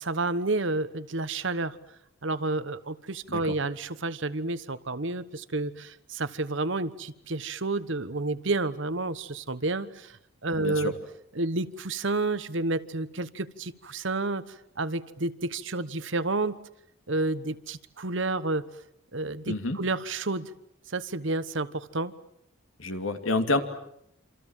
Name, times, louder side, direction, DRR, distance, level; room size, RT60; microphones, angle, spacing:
voice 1, 0.0-1.8 2.2-10.9 11.3-16.6 17.1-18.6 19.1-20.5 20.9-22.1, right 2 dB, 60° right, 13 dB, 1.2 m, -30 dB
voice 2, 19.5-19.8 22.8-23.6, left 2 dB, 70° left, 7 dB, 2.8 m, -28 dB
27.5 x 27.0 x 7.4 m, 0.73 s
head